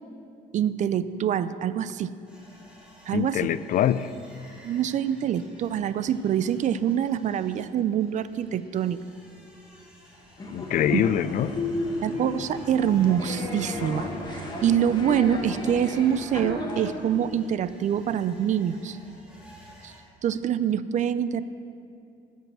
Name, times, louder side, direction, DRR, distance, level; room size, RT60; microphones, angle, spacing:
voice 1, 0.5-2.1 3.1-3.4 4.6-9.0 10.9-11.0 12.0-19.0 19.8-19.9 20.2-21.4, right 9 dB, 45° right, 14 dB, 0.4 m, -25 dB
sound 1, 2.3-20.0, equal, 5° right, 2.4 m, -52 dB
voice 2, 3.1-4.1 10.5-11.5, left 10 dB, 55° left, 15 dB, 0.4 m, -24 dB
sound 2, 10.4-16.9, left 2 dB, 25° left, 1.6 m, -33 dB
14.0 x 5.4 x 6.2 m, 2.6 s
cardioid pair, 110°, 17 cm